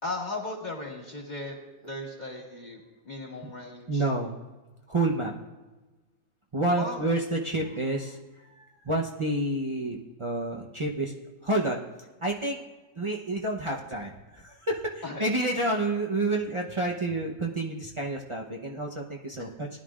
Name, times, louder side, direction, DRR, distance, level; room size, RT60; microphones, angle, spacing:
voice 1, 0.0-1.6 1.8-4.1 6.7-7.1 15.0-15.2 19.4-19.5, left 2 dB, 25° left, -3 dB, 1.9 m, -37 dB
voice 2, 3.9-4.3 4.9-5.3 6.5-8.2 8.5-11.1 11.4-11.8 12.2-12.6 13.0-19.7, right 2 dB, 45° right, -2 dB, 0.4 m, -29 dB
19.5 x 11.5 x 2.5 m, 1.2 s
omnidirectional pair, 2.0 m